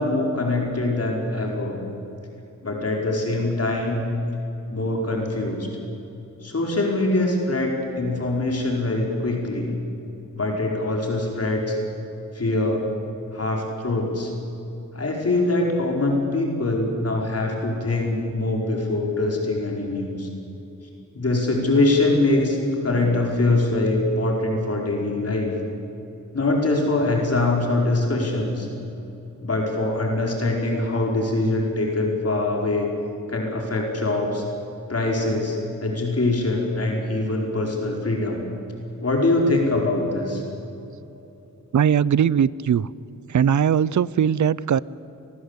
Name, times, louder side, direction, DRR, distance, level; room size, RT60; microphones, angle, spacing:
voice 1, 0.0-1.8 2.6-4.0 4.7-5.7 6.4-9.7 10.3-11.8 12.3-12.8 13.3-14.3 14.9-20.3 21.1-22.6 22.8-25.5 26.3-28.7 29.4-32.9 33.3-34.4 34.9-38.4 39.0-40.4, left 2 dB, 45° left, 0 dB, 4.6 m, -23 dB
voice 2, 41.7-42.9 43.3-44.8, right 8 dB, 60° right, 21 dB, 0.6 m, -19 dB
26.0 x 20.0 x 8.1 m, 2.9 s
wide cardioid pair, 80°, 34 cm